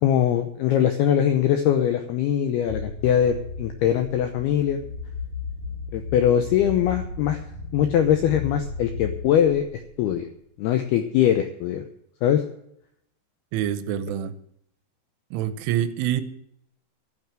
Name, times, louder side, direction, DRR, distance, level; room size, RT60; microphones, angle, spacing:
voice 1, 0.0-4.8 5.9-7.4 7.7-10.3 10.6-11.8 12.2-12.4, left 10 dB, 80° left, 7 dB, 2.3 m, -22 dB
sound 1, 2.7-10.2, left 4 dB, 40° right, 5.8 m, -35 dB
voice 2, 13.5-14.3 15.3-16.2, right 10 dB, 80° right, 13 dB, 3.3 m, -26 dB
12.0 x 9.1 x 7.7 m, 0.73 s
omnidirectional pair, 5.6 m